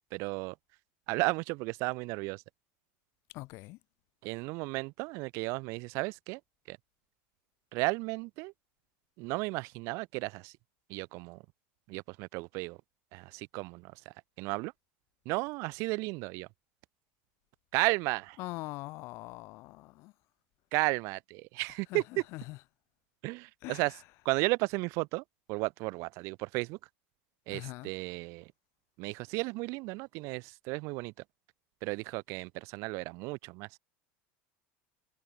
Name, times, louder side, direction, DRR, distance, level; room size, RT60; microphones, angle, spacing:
voice 1, 0.1-0.5 1.1-2.4 4.2-6.4 6.7-6.8 7.7-8.5 9.2-10.5 10.9-11.4 11.9-12.8 13.1-14.7 15.2-16.5 17.7-18.4 20.7-22.0 23.2-23.9 24.2-26.8 27.5-28.5 29.0-31.1 31.8-33.8, right 26 dB, 60° right, 6.8 m, -34 dB
voice 2, 3.3-3.8 18.4-20.1 21.9-22.6 23.6-23.9 27.5-27.9, left 22 dB, 55° left, 4.5 m, -42 dB
supercardioid pair, 130°, 5 cm